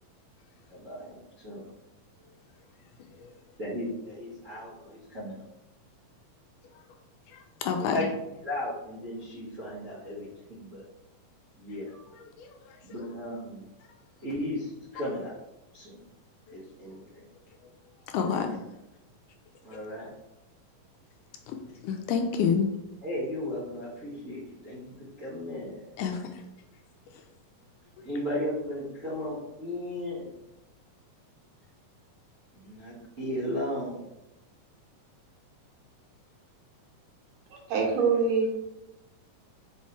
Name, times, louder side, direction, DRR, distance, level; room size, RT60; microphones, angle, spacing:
voice 1, 0.7-1.7 3.6-5.4 7.8-8.0 8.4-10.8 11.5-12.1 12.8-13.6 14.2-15.4 15.7-16.0 16.5-17.2 19.6-20.1 23.0-25.9 28.0-30.3 32.5-34.0, left 1 dB, 45° right, -9 dB, 1.0 m, -35 dB
voice 2, 7.3-8.1 12.2-12.8 16.5-16.6 18.1-18.6 19.7-19.8 21.5-21.6 21.8-22.7 26.0-26.4, left 6 dB, 80° left, 5 dB, 2.0 m, -29 dB
voice 3, 37.5-38.6, right 4 dB, 75° right, 0 dB, 2.8 m, -25 dB
5.5 x 5.4 x 3.2 m, 0.93 s
omnidirectional pair, 3.8 m